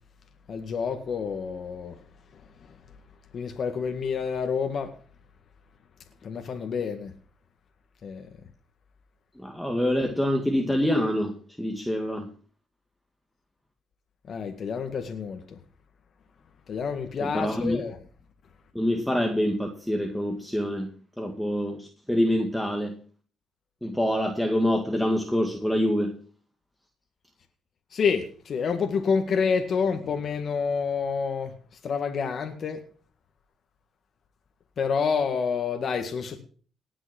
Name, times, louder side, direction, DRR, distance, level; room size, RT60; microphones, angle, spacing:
voice 1, 0.5-2.0 3.3-4.9 6.2-7.1 8.0-8.3 14.3-15.6 16.7-18.0 27.9-31.5 31.8-32.8 34.8-36.4, left 6 dB, 55° left, 1.8 m, -28 dB
voice 2, 9.4-12.3 17.2-17.8 18.7-23.0 23.8-26.2, equal, 5° left, 1.9 m, -26 dB
18.5 x 6.3 x 5.9 m
cardioid pair, 90°, 0 cm